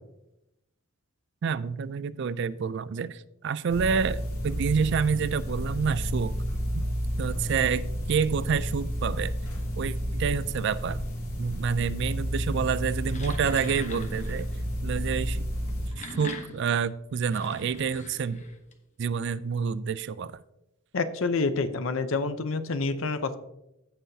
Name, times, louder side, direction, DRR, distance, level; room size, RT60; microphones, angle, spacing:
voice 1, 1.4-6.4 6.7-6.8 7.2-9.3 9.8-11.0 11.4-14.5 14.8-15.5 16.0-18.5 19.0-20.4, right 6 dB, 55° right, 17 dB, 0.3 m, -28 dB
sound 1, 3.7-15.9, equal, 85° left, 2.6 m, -31 dB
sound 2, 12.9-14.5 15.6-18.7, left 3 dB, 35° left, 0.9 m, -42 dB
voice 2, 20.9-23.4, left 3 dB, 65° left, 11 dB, 0.7 m, -28 dB
15.5 x 5.7 x 2.7 m, 0.87 s
head